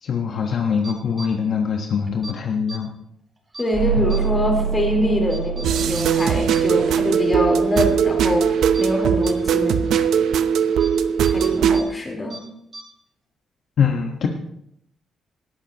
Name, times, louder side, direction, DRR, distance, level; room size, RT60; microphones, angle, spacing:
voice 1, 0.0-2.9 4.0-4.1 13.8-14.3, left 6 dB, 55° left, 2 dB, 1.3 m, -23 dB
sound 1, 0.8-1.3 2.1-2.3 2.7-2.8 3.5-3.7 4.1-4.2 4.6-4.7 5.3-6.6 6.9-7.0 7.4-7.5 7.8-7.9 8.2-8.3 8.7-8.8 9.2-9.3 9.9-10.0 10.8-10.9 11.2-11.8 12.1-12.4 12.7-12.8, right 2 dB, 20° right, 4.0 m, -37 dB
voice 2, 3.6-9.9 11.3-12.4, left 1 dB, 20° left, 0 dB, 3.9 m, -24 dB
sound 2, 3.7-8.4, right 7 dB, 40° right, 6.7 m, -27 dB
sound 3, 5.6-11.8, right 7 dB, 70° right, 0.7 m, -19 dB
19.0 x 14.0 x 3.0 m, 0.74 s
cardioid pair, 155°, 0 cm